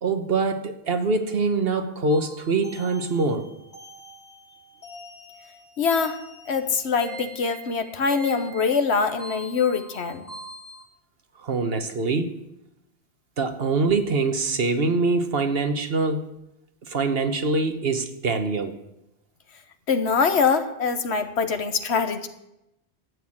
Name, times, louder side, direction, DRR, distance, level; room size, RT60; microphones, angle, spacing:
voice 1, 0.0-3.5 11.4-12.4 13.4-16.4 16.9-18.8, right 3 dB, 65° right, 1.3 m, -24 dB
sound 1, 2.1-10.8, right 1 dB, 50° left, 3.4 m, -43 dB
voice 2, 5.8-6.2 6.5-10.2 19.9-22.3, left 5 dB, 75° left, 1.4 m, -23 dB
12.5 x 8.1 x 8.7 m
omnidirectional pair, 1.1 m